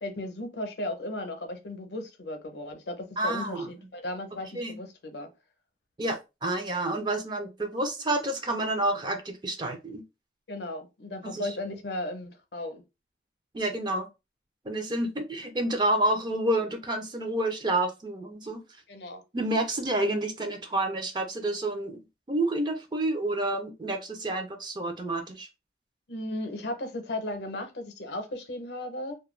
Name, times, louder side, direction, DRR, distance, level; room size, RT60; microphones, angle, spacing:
voice 1, 0.0-5.3 10.5-12.8 18.9-19.2 26.1-29.2, left 1 dB, 75° left, 0.6 m, -36 dB
voice 2, 3.2-3.7 4.5-4.8 6.0-10.0 11.2-11.5 13.5-14.1 14.6-18.6 19.3-22.0 22.3-25.5, right 1 dB, 25° right, 0.4 m, -29 dB
2.3 x 2.2 x 3.1 m
head